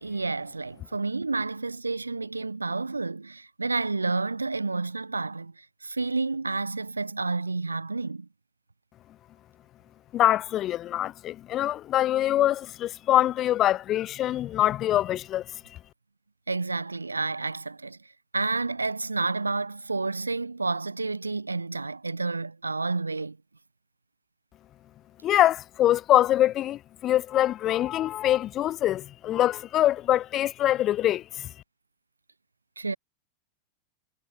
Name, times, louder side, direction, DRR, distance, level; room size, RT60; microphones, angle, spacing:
voice 1, 0.0-8.3 16.5-18.0 18.3-23.4 32.8-33.0, right 3 dB, 80° right, 1.1 m, -30 dB
voice 2, 10.1-15.4 25.2-31.5, left 13 dB, 30° left, 4.0 m, -24 dB
figure-of-eight pair, 90°, 0 cm